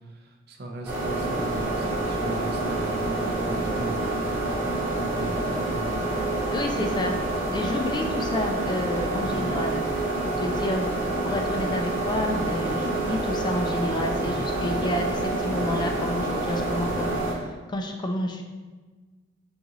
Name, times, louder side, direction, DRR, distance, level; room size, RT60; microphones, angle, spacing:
voice 1, 0.5-4.7 5.0-5.9, right 2 dB, 55° right, 2 dB, 0.5 m, -36 dB
sound 1, 0.9-17.3, right 2 dB, 10° right, 0.9 m, -27 dB
voice 2, 6.5-7.2 7.5-9.9 10.2-10.9 11.2-18.4, left 1 dB, 20° left, 3 dB, 0.3 m, -30 dB
3.9 x 3.6 x 2.9 m, 1.3 s
head